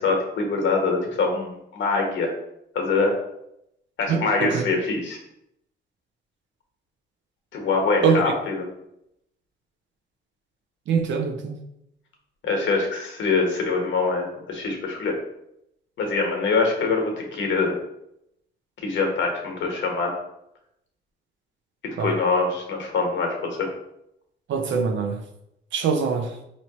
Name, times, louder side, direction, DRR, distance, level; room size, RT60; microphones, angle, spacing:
voice 1, 0.0-2.3 2.7-3.1 4.0-5.2 7.5-8.7 12.4-15.1 16.0-17.7 18.8-20.1 22.0-23.7, left 4 dB, 70° left, 1 dB, 1.2 m, -24 dB
voice 2, 4.1-4.6 8.0-8.2 10.9-11.6 22.0-22.1 24.5-25.2 25.7-26.3, right 6 dB, 70° right, 5 dB, 0.7 m, -23 dB
4.2 x 3.1 x 3.0 m, 0.80 s
cardioid pair, 90°, 20 cm